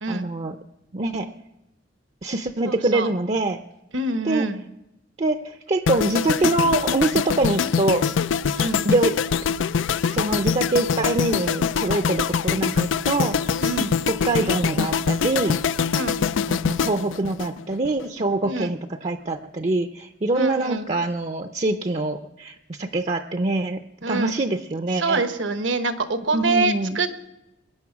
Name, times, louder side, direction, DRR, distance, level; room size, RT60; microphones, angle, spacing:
voice 1, 0.1-0.6 0.9-1.3 2.2-3.6 4.2-4.5 5.2-8.1 8.8-9.2 10.1-13.4 14.1-15.6 16.5-25.3 26.3-27.0, right 2 dB, 35° right, 7 dB, 0.6 m, -24 dB
voice 2, 2.7-3.1 3.9-4.6 8.6-8.8 13.6-13.9 15.9-16.2 18.4-18.7 20.3-20.9 24.0-24.3 24.9-27.2, right 3 dB, 80° right, 9 dB, 1.2 m, -25 dB
sound 1, 5.9-18.1 18.3-18.6, left 6 dB, 85° left, 0.4 m, -24 dB
22.5 x 9.8 x 5.9 m, 0.93 s
head